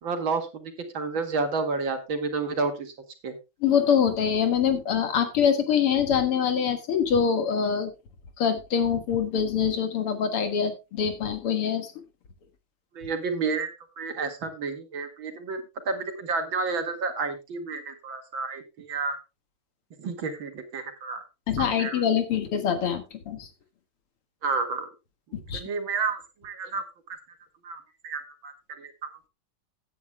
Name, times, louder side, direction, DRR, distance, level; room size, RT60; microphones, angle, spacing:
voice 1, 0.0-2.9 3.2-3.3 12.9-13.7 14.0-19.2 20.0-21.2 21.6-22.0 24.4-24.9 25.5-26.8 27.6-28.9, right 4 dB, 65° right, 6 dB, 2.6 m, -30 dB
voice 2, 3.6-7.9 8.4-11.9 21.5-23.5 25.3-25.6, left 7 dB, 85° left, 8 dB, 2.7 m, -24 dB
16.5 x 9.5 x 2.2 m, 0.26 s
omnidirectional pair, 2.4 m